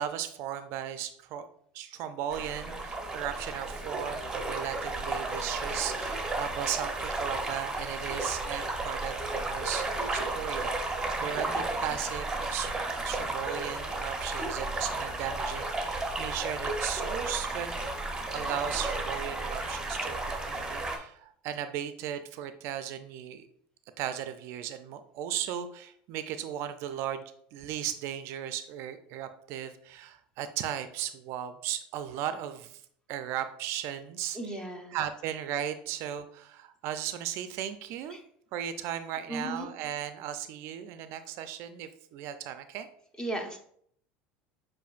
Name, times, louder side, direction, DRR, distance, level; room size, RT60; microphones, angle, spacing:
voice 1, 0.0-1.5 1.7-12.7 13.0-17.7 18.3-23.5 24.0-27.2 27.5-32.8 33.1-34.4 34.9-38.2 38.5-42.9, right 10 dB, 60° right, 10 dB, 0.4 m, -36 dB
sound 1, 2.3-21.0, right 2 dB, 15° right, 0.8 m, -33 dB
voice 2, 34.3-35.0 38.1-38.2 39.3-39.7 43.2-43.6, right 1 dB, 15° left, 3 dB, 1.0 m, -36 dB
7.0 x 2.5 x 2.4 m, 0.64 s
hypercardioid pair, 90°, 5 cm